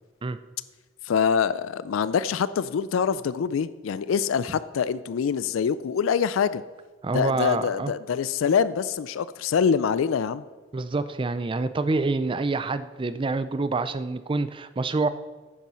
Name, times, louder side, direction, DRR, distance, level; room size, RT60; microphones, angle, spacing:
voice 1, 1.0-6.6 7.1-10.4, left 6 dB, 85° left, 16 dB, 0.4 m, -25 dB
voice 2, 7.0-7.9 10.7-15.1, right 3 dB, 25° right, 13 dB, 0.4 m, -27 dB
9.5 x 7.4 x 5.5 m, 1.3 s
head